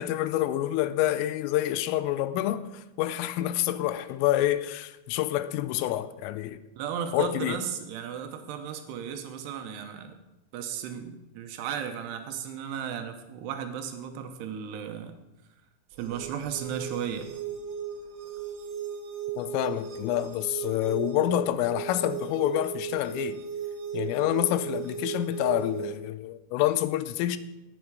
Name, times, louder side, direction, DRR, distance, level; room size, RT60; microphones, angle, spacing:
voice 1, 0.0-6.6 7.1-7.6 19.4-23.4 23.9-27.4, left 13 dB, 90° left, 3.2 m, -27 dB
voice 2, 6.8-10.2 10.5-15.2 16.0-17.3, right 8 dB, 75° right, 2.5 m, -35 dB
sound 1, 15.9-25.9, right 7 dB, 60° right, 2.4 m, -36 dB
18.5 x 7.5 x 4.8 m
omnidirectional pair, 5.8 m